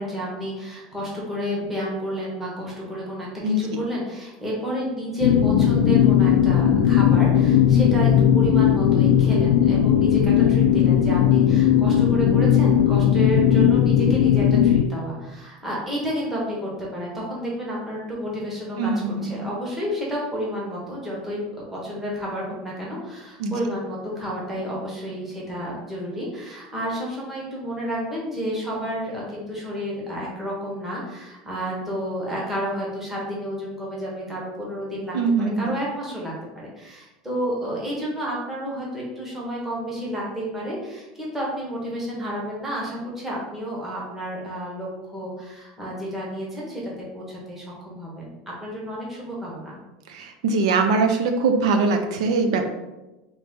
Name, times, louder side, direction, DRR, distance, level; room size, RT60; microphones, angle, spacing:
voice 1, 0.0-48.3 48.6-49.8, equal, 10° right, -5 dB, 1.0 m, -30 dB
sound 1, 5.2-14.8, left 9 dB, 85° left, 0.4 m, -17 dB
voice 2, 18.8-19.5 23.4-23.5 35.1-35.7 50.1-52.7, right 3 dB, 90° right, 6 dB, 0.7 m, -22 dB
3.9 x 3.1 x 3.6 m, 1.0 s
supercardioid pair, 175°, 3 cm